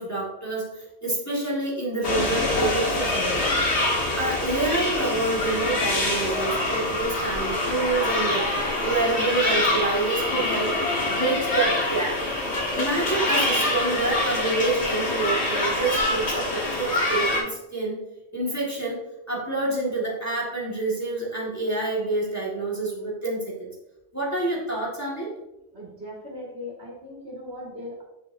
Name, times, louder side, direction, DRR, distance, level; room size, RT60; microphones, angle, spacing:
voice 1, 0.0-3.5 4.2-8.5 8.8-10.8 11.1-12.2 12.7-18.0 18.3-19.0 19.3-23.7 24.1-25.3, right 2 dB, 15° left, -6 dB, 1.7 m, -27 dB
sound 1, 2.0-17.4, left 2 dB, 60° left, 1.7 m, -25 dB
voice 2, 25.7-28.0, left 1 dB, 60° right, -4 dB, 2.2 m, -38 dB
7.4 x 6.0 x 2.6 m, 0.92 s
omnidirectional pair, 1.3 m